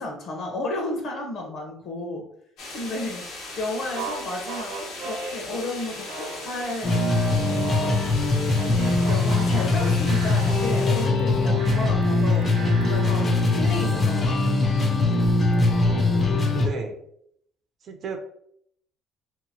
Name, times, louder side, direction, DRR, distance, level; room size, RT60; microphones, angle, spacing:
voice 1, 0.0-2.3 2.7-3.3 3.6-6.9 7.4-8.2 8.6-14.6, left 2 dB, 45° left, 1 dB, 0.8 m, -33 dB
sound 1, 2.6-11.1, left 2 dB, 75° left, 1.1 m, -38 dB
sound 2, 3.8-8.1 8.5-13.4, right 1 dB, 75° right, 0.7 m, -34 dB
sound 3, 6.8-16.7, left 3 dB, 25° left, 0.5 m, -22 dB
voice 2, 15.7-16.2 16.5-17.0 17.9-18.2, right 3 dB, 40° right, 5 dB, 0.4 m, -34 dB
2.8 x 2.4 x 2.8 m, 0.67 s
cardioid pair, 160°, 0 cm